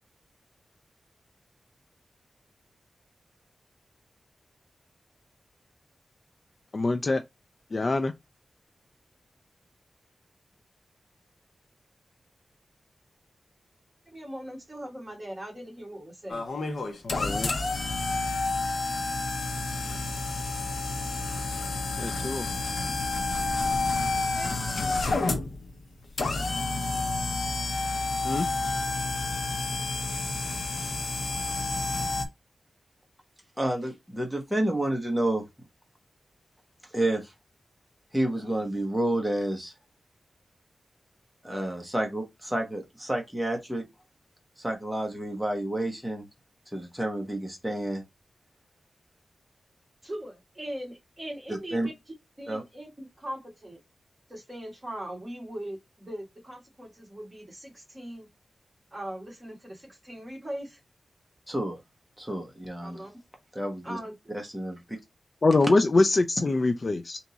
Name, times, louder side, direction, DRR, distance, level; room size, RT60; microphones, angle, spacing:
voice 1, 6.7-7.2 7.7-8.1 17.2-17.5 22.0-22.4 28.2-28.5 65.4-67.2, left 2 dB, 35° left, 0.3 m, -24 dB
voice 2, 14.1-16.4 24.3-24.6 50.0-51.9 52.4-53.8 54.3-58.3 58.9-60.8 62.8-63.1 63.8-64.3, right 1 dB, 15° right, 1.6 m, -40 dB
sound 1, 16.3-32.2, left 3 dB, 65° left, 0.9 m, -29 dB
voice 3, 33.6-35.4 36.9-37.3 38.1-39.7 41.4-43.8 44.6-46.2 46.7-48.0 51.7-51.9 52.5-52.6 61.5-61.8 62.2-63.0 63.5-64.0 64.3-65.0, right 1 dB, ahead, 0.9 m, -29 dB
3.5 x 2.9 x 4.0 m
wide cardioid pair, 155°, 0 cm